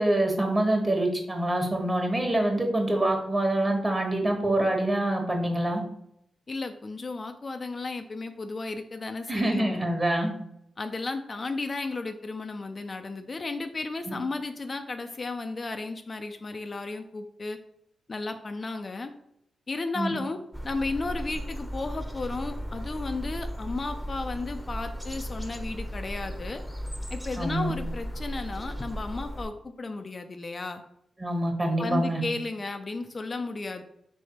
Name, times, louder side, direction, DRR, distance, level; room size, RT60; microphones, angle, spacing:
voice 1, 0.0-5.8 9.3-10.3 14.1-14.2 19.9-20.1 27.4-27.7 31.2-32.2, right 1 dB, 25° right, 2 dB, 1.3 m, -25 dB
voice 2, 6.5-9.9 10.8-17.6 18.1-19.1 19.7-20.4 20.6-26.6 27.1-30.8 31.8-33.8, left 3 dB, 45° left, 7 dB, 0.4 m, -34 dB
sound 1, 20.5-29.5, equal, 5° left, 0.8 m, -36 dB
3.4 x 3.3 x 4.2 m, 0.75 s
supercardioid pair, 50°, 0 cm